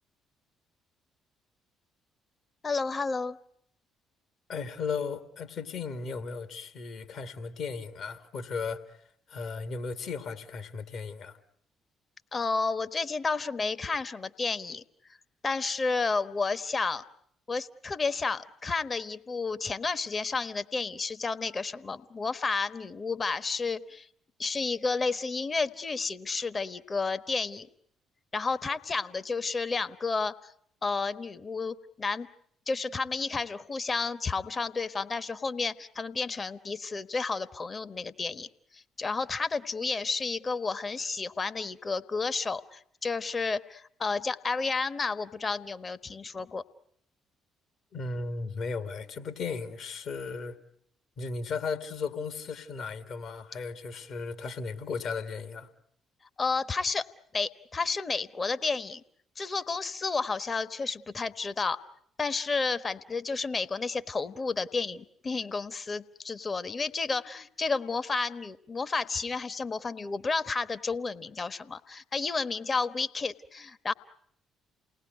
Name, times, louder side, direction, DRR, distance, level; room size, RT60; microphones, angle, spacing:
voice 1, 2.6-3.4 12.3-14.8 15.4-17.0 17.5-24.1 24.4-27.7 28.3-30.3 30.8-32.3 32.7-38.5 38.7-46.6 56.4-57.1 57.3-59.0 59.4-61.8 62.2-73.9, left 4 dB, 35° left, 1.1 m, -31 dB
voice 2, 4.5-8.8 9.3-11.4 47.9-50.6 51.2-55.7, left 4 dB, 60° left, 1.8 m, -35 dB
29.0 x 19.0 x 9.2 m
hypercardioid pair, 45°, 0 cm